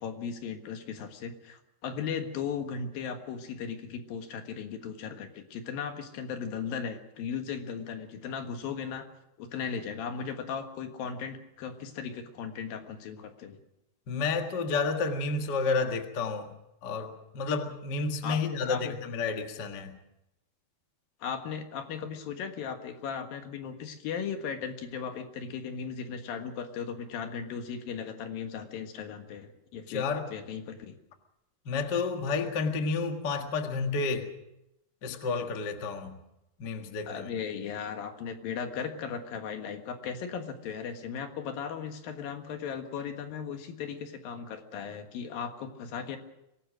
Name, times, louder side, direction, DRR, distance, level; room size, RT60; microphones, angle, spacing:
voice 1, 0.0-9.1 9.4-13.6 18.2-19.0 21.2-31.0 37.0-46.2, left 6 dB, 65° left, 6 dB, 3.1 m, -37 dB
voice 2, 14.1-16.5 16.8-19.9 29.9-30.3 31.6-34.3 35.0-36.2 36.6-37.3, left 4 dB, 50° left, 5 dB, 1.3 m, -30 dB
24.5 x 18.0 x 6.3 m, 0.86 s
omnidirectional pair, 4.6 m